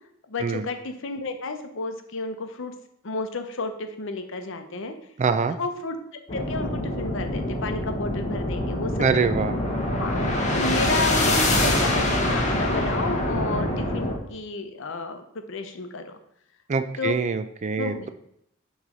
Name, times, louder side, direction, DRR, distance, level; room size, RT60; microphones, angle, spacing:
voice 1, 0.3-2.7 3.0-5.0 5.6-6.0 6.3-9.1 10.0-15.2 15.5-16.2 17.0-17.1 17.8-18.1, left 3 dB, 65° left, 7 dB, 0.7 m, -31 dB
voice 2, 5.2-5.6 9.0-9.5 16.7-18.1, right 5 dB, 35° right, 10 dB, 0.4 m, -24 dB
sound 1, 6.3-14.2, left 1 dB, 35° left, 1.0 m, -25 dB
6.6 x 3.2 x 5.0 m, 0.73 s
head